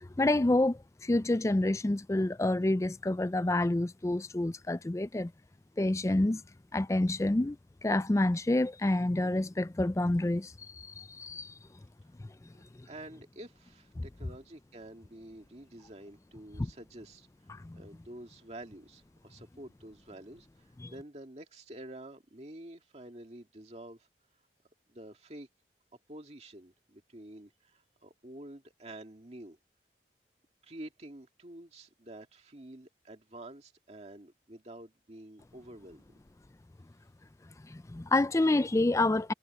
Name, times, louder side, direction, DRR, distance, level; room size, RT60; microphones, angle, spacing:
voice 1, 0.0-5.3 5.8-6.4 6.7-7.6 7.8-11.5 14.0-14.1 16.6-16.7 17.5-17.8 20.8-20.9 37.7-39.3, left 2 dB, 15° left, 0.4 m, -28 dB
voice 2, 12.5-17.3 17.7-24.1 24.9-25.5 26.1-29.6 30.6-36.0, right 1 dB, 35° right, 2.2 m, -49 dB
head